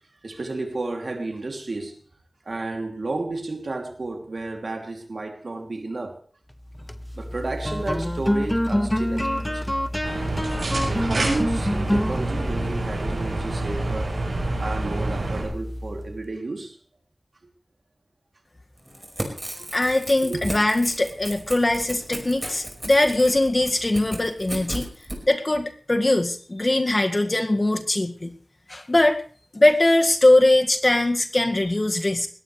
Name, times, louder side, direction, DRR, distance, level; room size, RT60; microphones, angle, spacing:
voice 1, 0.2-2.0 2.5-6.2 7.2-9.8 10.9-14.2 14.6-16.8 20.3-20.5, right 2 dB, 70° right, 2.9 m, -32 dB
sound 1, 6.7-16.3, equal, 10° left, 0.9 m, -28 dB
sound 2, 10.0-15.4, right 2 dB, 90° right, 7.4 m, -28 dB
Crackle / Tearing, 18.8-25.2, right 1 dB, 15° right, 5.1 m, -35 dB
voice 2, 19.7-24.9 25.3-28.3 28.7-29.2 29.5-32.3, left 1 dB, 40° left, 1.9 m, -21 dB
20.0 x 17.5 x 3.3 m
wide cardioid pair, 55°, 0 cm